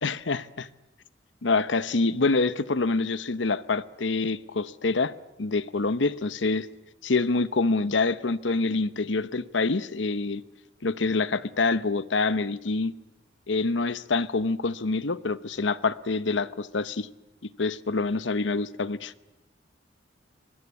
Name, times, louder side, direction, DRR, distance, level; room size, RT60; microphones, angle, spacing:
voice 1, 0.0-0.7 1.4-5.1 5.4-6.7 7.0-10.4 10.8-12.9 13.5-17.1 17.6-19.1, left 3 dB, 85° left, 0.9 m, -26 dB
24.0 x 21.5 x 8.4 m
head